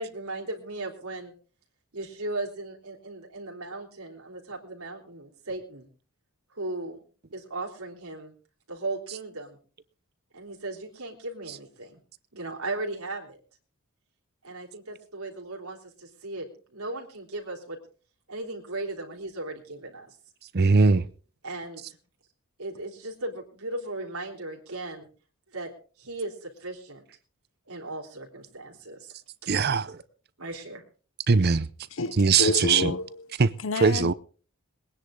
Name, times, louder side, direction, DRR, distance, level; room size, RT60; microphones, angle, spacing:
voice 1, 0.0-1.3 1.9-5.9 6.5-7.0 7.3-8.3 8.7-9.6 10.3-12.0 12.3-13.4 14.4-17.8 18.3-20.2 21.4-22.0 22.6-25.1 25.5-25.7 26.0-27.0 27.7-29.1 30.4-30.8, right 2 dB, 85° right, 3.5 m, -37 dB
voice 2, 20.5-21.0 29.5-30.0 31.3-31.7 32.2-32.9 33.4-33.5 33.8-34.1, right 4 dB, 45° right, 0.6 m, -20 dB
voice 3, 31.9-33.2 33.6-34.1, left 3 dB, 65° left, 0.8 m, -29 dB
21.5 x 10.0 x 3.8 m
head